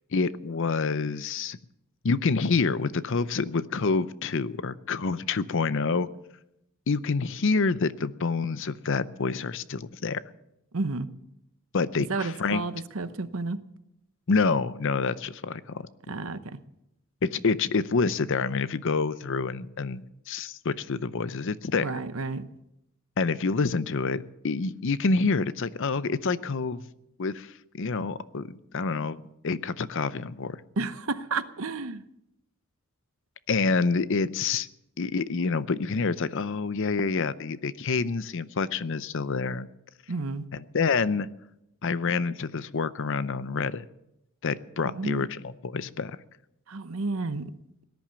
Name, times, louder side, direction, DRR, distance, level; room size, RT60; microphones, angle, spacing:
voice 1, 0.1-1.6 2.0-6.1 6.9-10.2 11.7-12.6 14.3-15.9 17.2-21.9 23.2-26.8 27.2-30.6 33.5-34.7 35.0-39.7 40.5-41.3 41.8-43.9 44.4-46.2, left 4 dB, 60° left, 16 dB, 0.6 m, -27 dB
voice 2, 10.7-11.1 12.1-13.6 16.1-16.6 21.8-22.4 30.8-32.0 40.1-40.5 44.8-45.3 46.7-47.5, right 3 dB, 65° right, 12 dB, 0.9 m, -31 dB
18.0 x 10.5 x 6.9 m, 0.84 s
head